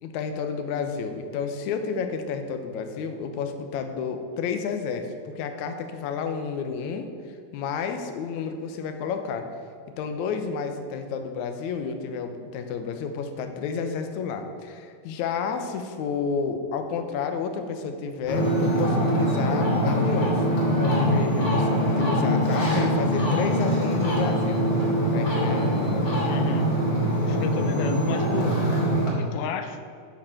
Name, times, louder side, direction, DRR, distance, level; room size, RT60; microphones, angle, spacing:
voice 1, 0.0-7.1 7.5-9.5 10.0-24.7 25.1-25.7, left 6 dB, 70° left, 6 dB, 1.9 m, -31 dB
Ocean, 18.2-29.1, equal, 30° left, 2.9 m, -23 dB
voice 2, 26.2-26.8 27.2-28.6 29.2-29.8, left 7 dB, 90° left, 8 dB, 2.6 m, -32 dB
10.0 x 6.6 x 7.6 m, 2.3 s
omnidirectional pair, 4.2 m